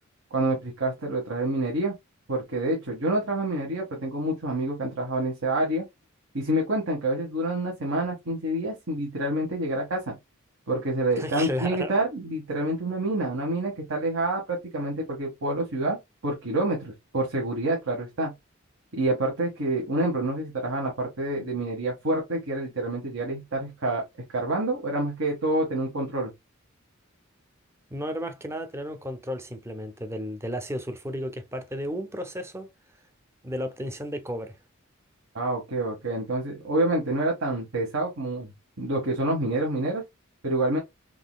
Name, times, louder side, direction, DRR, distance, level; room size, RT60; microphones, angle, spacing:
voice 1, 0.3-1.9 2.3-5.8 6.3-10.1 10.7-16.0 16.2-18.3 18.9-24.0 24.3-26.3 35.3-40.0 40.4-40.8, right 1 dB, 70° right, 1.1 m, -27 dB
voice 2, 11.2-12.0 27.9-32.7 33.4-34.6, equal, 10° right, 0.5 m, -33 dB
3.8 x 3.1 x 2.2 m
head